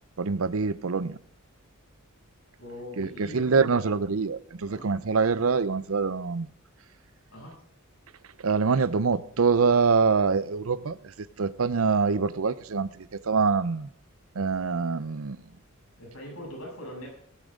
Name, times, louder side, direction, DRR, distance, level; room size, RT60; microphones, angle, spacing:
voice 1, 0.2-1.2 3.0-6.5 8.4-13.9 14.3-15.5, right 5 dB, 75° right, 0.6 m, -25 dB
voice 2, 2.6-3.9 4.6-4.9 6.4-6.5 7.3-7.5 16.0-17.1, equal, 80° left, 7.3 m, -41 dB
17.5 x 13.0 x 3.8 m
head